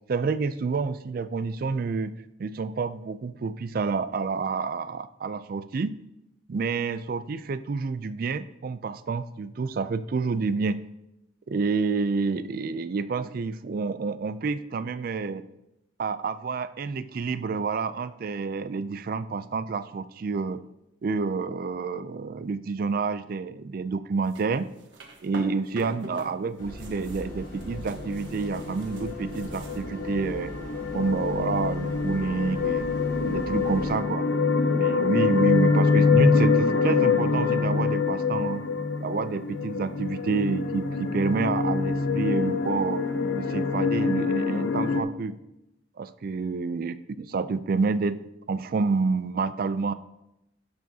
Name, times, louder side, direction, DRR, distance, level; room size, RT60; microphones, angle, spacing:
voice 1, 0.1-6.0 6.5-10.8 11.5-15.4 16.0-20.6 21.0-24.7 25.2-30.6 30.9-32.9 33.2-34.3 34.7-38.6 39.0-43.0 43.3-45.4 46.0-48.2 48.5-49.9, right 4 dB, 50° right, 14 dB, 0.4 m, -28 dB
sound 1, 24.2-26.3 26.6-29.9, right 2 dB, 80° right, 1.2 m, -45 dB
sound 2, 26.6-34.0, equal, 50° left, 3.5 m, -41 dB
sound 3, 27.7-45.0, left 4 dB, 75° left, 0.7 m, -25 dB
12.0 x 7.0 x 2.8 m, 0.88 s
head